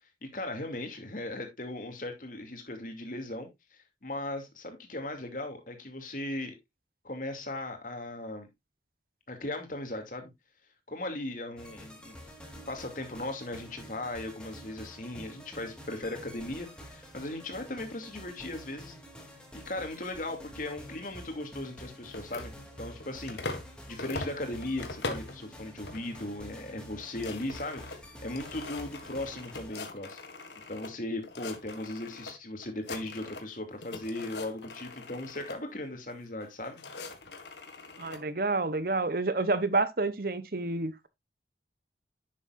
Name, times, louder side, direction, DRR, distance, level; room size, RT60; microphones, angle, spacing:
voice 1, 0.3-6.5 7.0-8.5 9.3-10.3 10.9-12.2 12.7-18.9 19.5-22.5 22.8-23.4 23.9-30.2 30.7-36.8, left 1 dB, 50° left, 2.6 m, -38 dB
sound 1, 11.6-29.7, equal, 5° left, 2.4 m, -48 dB
sound 2, 22.1-23.7 24.0-25.4 25.8-26.3 26.6-26.7 26.9-30.9 31.2-32.3 32.6-33.5 33.8-35.6 36.4-38.2, left 3 dB, 80° left, 1.9 m, -42 dB
voice 2, 38.0-41.1, right 3 dB, 55° right, 0.9 m, -29 dB
11.0 x 7.5 x 2.5 m
head